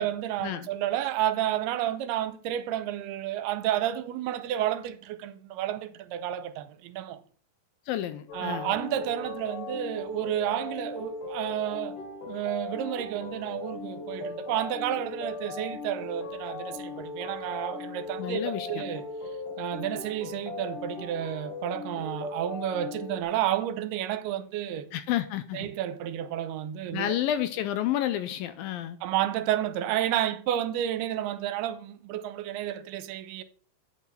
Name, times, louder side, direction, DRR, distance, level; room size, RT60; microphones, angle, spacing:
voice 1, 0.0-7.2 8.3-12.0 12.3-19.0 19.6-24.9 25.5-27.2 29.0-33.4, right 11 dB, 85° right, 2.6 m, -31 dB
voice 2, 7.9-8.7 18.2-18.8 24.9-25.7 26.9-29.0, left 12 dB, 80° left, 2.1 m, -30 dB
sound 1, 8.3-23.2, left 3 dB, 60° left, 3.0 m, -38 dB
9.1 x 8.5 x 5.7 m
omnidirectional pair, 4.7 m